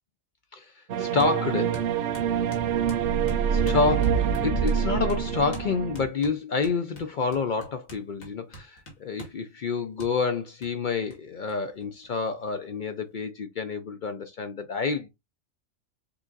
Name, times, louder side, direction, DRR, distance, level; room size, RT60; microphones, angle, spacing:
voice 1, 0.5-1.8 3.5-15.1, left 4 dB, 60° left, 0.5 m, -28 dB
sound 1, 0.9-6.0, right 7 dB, 70° right, 0.9 m, -25 dB
sound 2, 1.2-1.4 1.7-4.8 5.1-5.2 5.5-5.7 5.9-9.4 10.0-10.1 10.6-10.7 11.1-11.2 11.5-11.6 11.8-12.5, right 2 dB, 85° left, 2.1 m, -45 dB
6.7 x 2.5 x 2.4 m
omnidirectional pair, 1.4 m